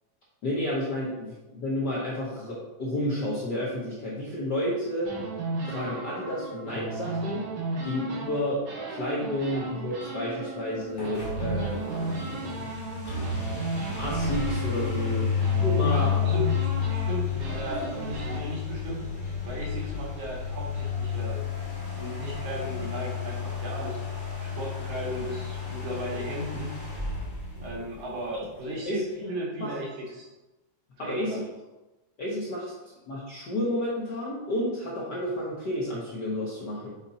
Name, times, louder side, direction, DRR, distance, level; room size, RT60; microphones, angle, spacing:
voice 1, 0.4-5.1 5.6-7.5 7.8-8.6 8.9-12.7 14.0-15.3 15.5-16.1 28.8-29.0 29.6-29.7 31.0-31.4 32.2-36.9, left 1 dB, 65° left, -5 dB, 1.0 m, -31 dB
sound 1, 5.0-8.4 8.7-18.4, right 2 dB, 70° right, 2.7 m, -34 dB
sound 2, 10.9-28.4, left 6 dB, 40° left, 0.7 m, -31 dB
voice 2, 15.8-19.0 19.4-21.4 21.9-24.0 24.4-26.7 27.6-30.3 31.0-31.4, right 1 dB, 85° right, -4 dB, 3.1 m, -36 dB
6.9 x 4.2 x 4.1 m, 1.1 s
omnidirectional pair, 3.3 m